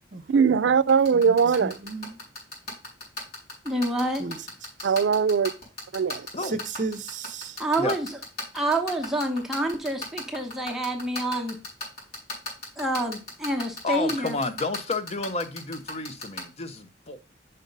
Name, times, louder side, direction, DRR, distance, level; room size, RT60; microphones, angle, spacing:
voice 1, 0.3-1.8 4.8-5.5 5.9-6.3, right 6 dB, 85° right, 0.4 m, -20 dB
sound 1, 0.9-16.4, left 2 dB, 60° left, 4.2 m, -34 dB
voice 2, 1.6-2.1 4.2-4.4 6.4-7.6, right 3 dB, 45° right, 0.8 m, -33 dB
voice 3, 3.6-4.2 7.6-8.2 8.5-11.6 12.8-14.4, right 1 dB, ahead, 1.0 m, -27 dB
voice 4, 13.8-17.2, left 3 dB, 35° left, 0.7 m, -31 dB
5.6 x 5.3 x 5.2 m
head